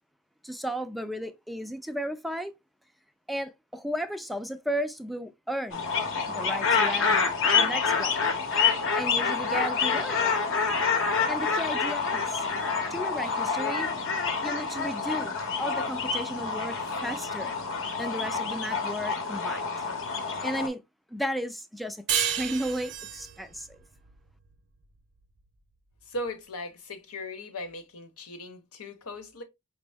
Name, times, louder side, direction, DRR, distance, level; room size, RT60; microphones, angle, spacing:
voice 1, 0.4-2.5 3.3-5.8 6.3-8.2 9.0-10.3 11.3-12.5 12.9-13.9 14.4-16.8 17.0-17.5 18.0-19.7 20.4-20.8 21.1-23.8, equal, ahead, 0.3 m, -34 dB
sound 1, 5.7-20.7, left 5 dB, 60° left, 0.8 m, -27 dB
sound 2, 22.1-25.3, right 9 dB, 55° right, 0.6 m, -32 dB
voice 2, 26.0-29.4, left 1 dB, 85° left, 0.9 m, -38 dB
5.2 x 2.0 x 3.4 m
head